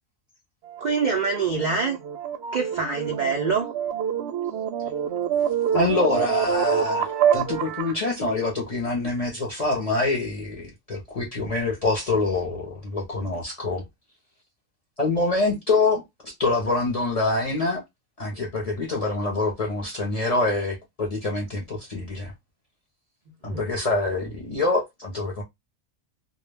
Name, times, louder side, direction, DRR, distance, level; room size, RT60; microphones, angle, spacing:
sound 1, 0.7-8.0, right 9 dB, 65° right, 0.7 m, -26 dB
voice 1, 0.8-2.0 2.5-3.7 23.5-23.6, right 5 dB, 90° right, 0.4 m, -25 dB
voice 2, 5.7-13.8 15.0-17.8 18.2-22.3 23.4-25.4, left 2 dB, 45° left, 0.5 m, -25 dB
2.2 x 2.1 x 3.2 m
omnidirectional pair, 1.4 m